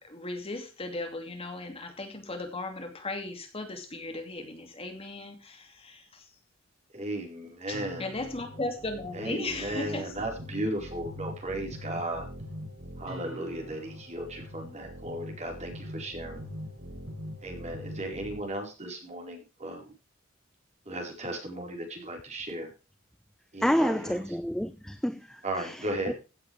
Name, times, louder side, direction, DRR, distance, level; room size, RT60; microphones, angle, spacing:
voice 1, 0.0-6.3 7.7-10.1, left 2 dB, 30° left, 2.7 m, -37 dB
voice 2, 6.9-8.0 9.1-12.3 13.0-16.4 17.4-19.9 20.8-22.7 23.5-24.4 25.4-26.1, right 1 dB, 35° right, 4.7 m, -36 dB
sound 1, 7.7-18.4, equal, 85° right, 3.3 m, -42 dB
voice 3, 23.6-25.4 26.1-26.2, equal, 5° left, 0.6 m, -28 dB
16.0 x 7.9 x 3.5 m
head